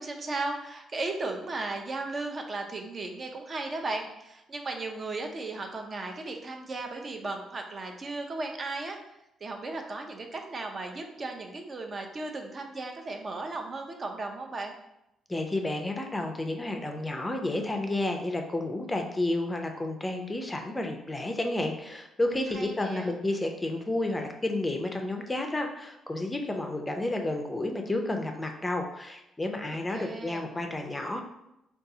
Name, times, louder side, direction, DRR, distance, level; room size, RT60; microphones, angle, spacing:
voice 1, 0.0-9.0 9.4-14.7 22.5-23.1 29.9-30.4, right 3 dB, 40° right, 3 dB, 0.5 m, -36 dB
voice 2, 15.3-31.2, left 2 dB, 15° left, 4 dB, 0.4 m, -31 dB
3.7 x 2.3 x 2.7 m, 0.85 s
cardioid pair, 90°, 0 cm